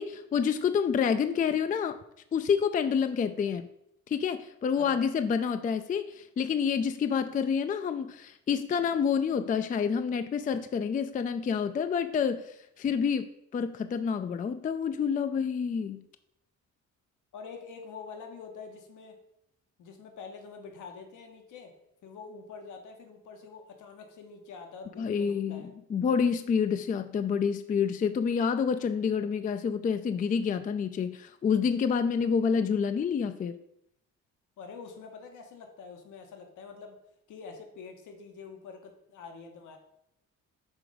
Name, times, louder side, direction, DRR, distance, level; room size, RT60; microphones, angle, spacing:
voice 1, 0.0-2.0 2.3-3.7 4.1-16.0 25.0-33.6, left 6 dB, 30° left, 10 dB, 0.3 m, -28 dB
voice 2, 17.3-19.2 19.8-21.7 22.0-25.7 34.6-37.0 37.3-39.8, left 5 dB, 80° left, 4 dB, 1.2 m, -46 dB
6.2 x 3.8 x 4.9 m, 0.77 s
cardioid pair, 90°, 30 cm